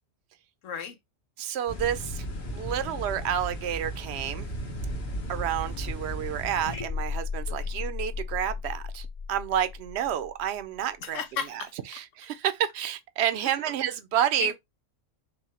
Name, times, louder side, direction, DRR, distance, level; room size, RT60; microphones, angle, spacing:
voice 1, 0.6-1.0 7.5-7.7 11.0-11.7 13.4-13.5 14.4-14.5, left 7 dB, 80° left, 1.0 m, -34 dB
voice 2, 1.4-2.2 2.5-4.5 5.3-11.2 11.9-14.5, right 10 dB, 65° right, 0.8 m, -29 dB
sound 1, 1.7-6.8, equal, 55° left, 1.5 m, -35 dB
sound 2, 6.6-10.8, left 5 dB, 25° left, 0.8 m, -35 dB
5.6 x 2.2 x 4.2 m
omnidirectional pair, 1.3 m